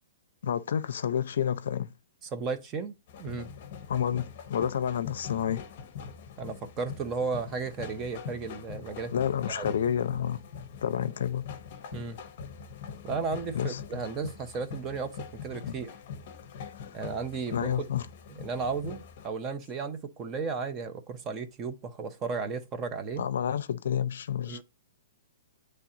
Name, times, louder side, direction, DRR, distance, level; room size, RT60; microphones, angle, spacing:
voice 1, 0.4-1.9 3.9-5.6 9.1-10.4 10.8-11.5 13.5-14.0 15.7-15.8 16.8-16.9 17.5-18.1 23.2-24.6, left 9 dB, 65° left, 0.5 m, -29 dB
voice 2, 2.3-2.9 3.2-3.5 6.4-9.1 9.5-9.8 11.9-12.2 13.0-15.9 16.9-17.9 18.4-23.2 24.5-24.6, right 5 dB, 20° right, 0.6 m, -34 dB
sound 1, 3.1-19.3, left 7 dB, 40° left, 0.8 m, -43 dB
8.4 x 3.3 x 3.8 m
hypercardioid pair, 165°, 0 cm